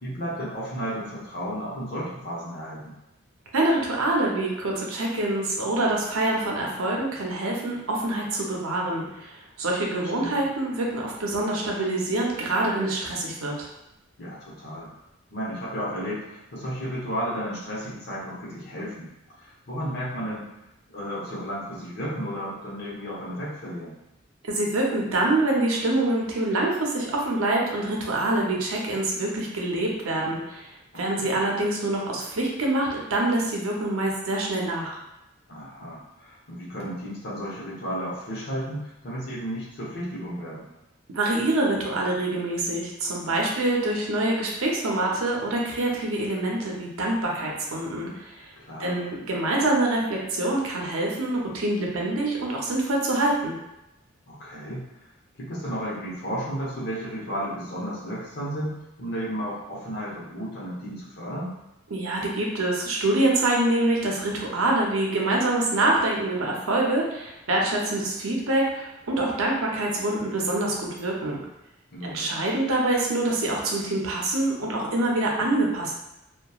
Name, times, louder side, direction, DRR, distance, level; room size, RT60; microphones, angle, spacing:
voice 1, 0.0-3.0 9.9-10.5 14.2-14.9 15.3-19.1 19.4-20.4 20.9-24.0 30.9-31.4 35.5-40.7 48.6-49.1 54.3-54.9 55.4-61.5 71.9-72.4, equal, 50° left, -6 dB, 0.9 m, -33 dB
voice 2, 3.5-13.7 24.5-35.0 41.1-48.5 48.8-53.6 61.9-71.4 72.0-75.9, right 2 dB, 85° right, -1 dB, 0.6 m, -25 dB
2.8 x 2.3 x 2.3 m, 0.91 s
head